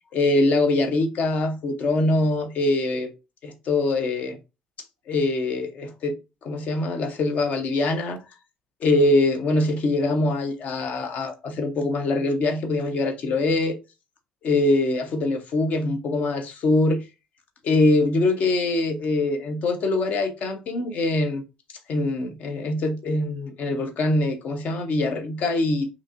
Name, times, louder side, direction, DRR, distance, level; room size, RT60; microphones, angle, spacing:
voice 1, 0.1-3.1 3.4-4.4 5.1-8.2 8.8-13.8 14.4-17.0 17.6-21.4 21.9-25.9, left 2 dB, 50° left, 0.7 m, -23 dB
5.0 x 2.8 x 2.4 m
figure-of-eight pair, 50°, 3 cm